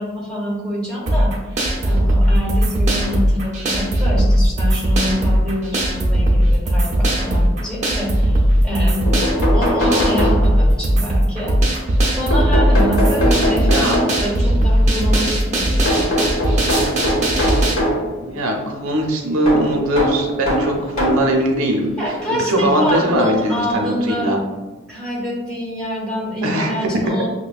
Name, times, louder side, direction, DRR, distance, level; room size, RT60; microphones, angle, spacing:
voice 1, 0.0-9.0 9.5-11.6 12.2-16.0 22.0-24.4 24.9-27.3, equal, 5° left, -6 dB, 0.9 m, -25 dB
sound 1, 1.1-17.7, right 1 dB, 35° right, 0.5 m, -17 dB
sound 2, 8.7-8.8 9.1-10.8 12.3-14.4 15.9-18.1 19.5-21.3 22.2-22.3 23.6-23.7 24.0-24.1, equal, 75° left, 1.1 m, -21 dB
voice 2, 13.6-14.0 18.2-21.9 22.3-24.4 26.4-27.0, right 1 dB, 85° right, 1 dB, 0.6 m, -20 dB
6.0 x 2.2 x 2.3 m, 1.2 s
head